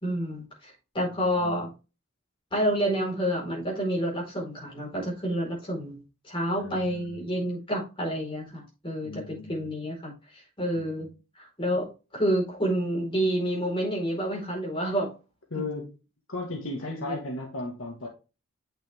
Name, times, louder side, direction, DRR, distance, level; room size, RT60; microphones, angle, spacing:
voice 1, 0.0-1.7 2.5-11.1 11.3-15.1 16.9-17.2, equal, 25° left, 4.6 m, -29 dB
voice 2, 1.1-1.6 6.6-7.3 9.0-9.7 10.7-11.1 15.5-15.9 16.3-18.1, left 2 dB, 65° left, 1.8 m, -36 dB
8.4 x 6.4 x 3.6 m
head